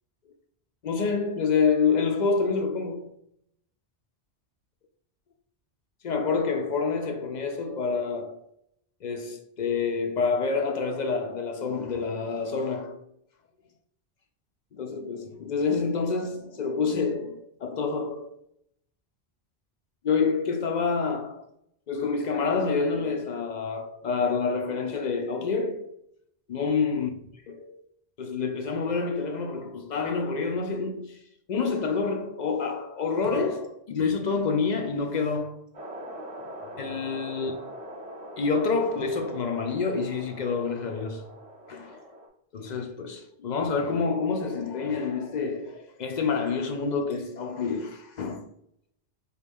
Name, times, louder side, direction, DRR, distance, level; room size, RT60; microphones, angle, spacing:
voice 1, 0.8-3.1 6.0-8.4 9.0-13.0 14.7-18.3 20.0-21.5 21.9-25.9 26.5-27.1 27.5-27.8 28.2-31.2 31.5-35.6 36.8-37.5 38.4-41.2 41.7-42.0 42.5-48.4, left 4 dB, 55° left, 0.5 m, -27 dB
sound 1, 35.7-42.3, equal, 35° right, 0.9 m, -42 dB
4.5 x 2.3 x 3.4 m
omnidirectional pair, 1.1 m